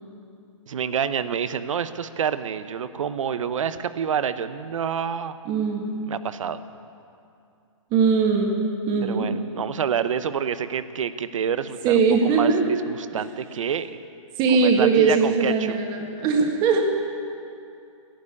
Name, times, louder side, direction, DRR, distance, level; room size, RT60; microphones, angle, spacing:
voice 1, 0.7-5.4 6.1-6.6 9.0-14.0 14.5-15.8, right 7 dB, 70° right, 13 dB, 0.9 m, -28 dB
voice 2, 5.5-5.9 7.9-8.6 8.9-9.3 11.8-12.6 14.4-16.8, right 5 dB, 25° right, 2 dB, 1.8 m, -20 dB
14.5 x 11.5 x 8.4 m, 2.5 s
hypercardioid pair, 140°, 17 cm